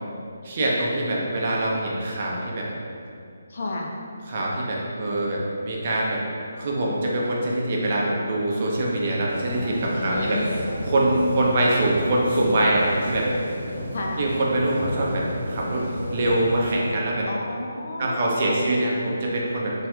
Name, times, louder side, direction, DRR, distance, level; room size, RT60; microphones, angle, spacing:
voice 1, 0.4-2.7 4.3-6.2 6.6-13.3 14.2-17.3 18.0-19.7, right 1 dB, 40° right, -3 dB, 0.5 m, -24 dB
voice 2, 3.5-3.9 9.9-10.6 13.9-14.3 17.3-18.6, left 2 dB, 55° left, -1 dB, 0.4 m, -31 dB
sound 1, 9.3-16.7, equal, 65° right, 0.8 m, -32 dB
4.2 x 2.3 x 2.2 m, 2.5 s
hypercardioid pair, 165°, 0 cm